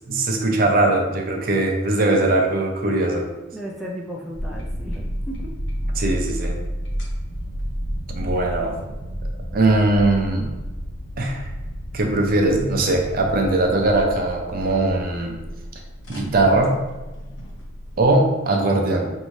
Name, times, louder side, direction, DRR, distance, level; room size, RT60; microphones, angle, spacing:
voice 1, 0.1-3.3 6.0-6.6 8.1-8.7 9.5-10.5 11.2-11.5 11.9-15.4 16.1-16.7 18.0-19.1, right 2 dB, 45° right, 2 dB, 0.6 m, -20 dB
voice 2, 3.5-5.5, equal, ahead, -4 dB, 0.4 m, -35 dB
sound 1, 4.3-18.1, equal, 65° left, 0.8 m, -31 dB
4.6 x 2.7 x 3.1 m, 1.1 s
head